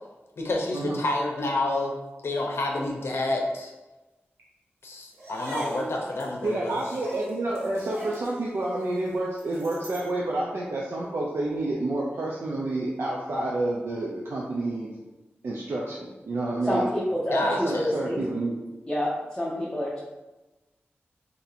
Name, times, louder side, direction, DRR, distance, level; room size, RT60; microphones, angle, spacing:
voice 1, 0.4-2.0 2.2-3.7 4.8-6.8 17.3-17.9, left 2 dB, 70° left, 0 dB, 0.6 m, -29 dB
sound 1, 5.1-10.1, right 1 dB, 85° right, 0.9 m, -40 dB
voice 2, 6.4-14.9 15.4-16.8 17.4-18.5, right 2 dB, 70° right, -4 dB, 0.5 m, -29 dB
voice 3, 16.6-18.2 18.9-20.0, equal, 15° left, -7 dB, 0.7 m, -28 dB
2.8 x 2.6 x 4.1 m, 1.1 s
wide cardioid pair, 75°, 4 cm